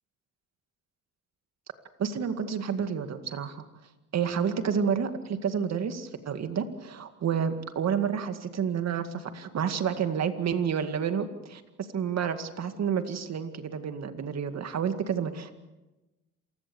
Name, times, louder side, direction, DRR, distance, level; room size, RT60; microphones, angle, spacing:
voice 1, 2.0-3.6 4.1-15.5, right 7 dB, 60° right, 8 dB, 2.1 m, -30 dB
27.5 x 16.5 x 7.1 m, 1.1 s
cardioid pair, 90°, 30 cm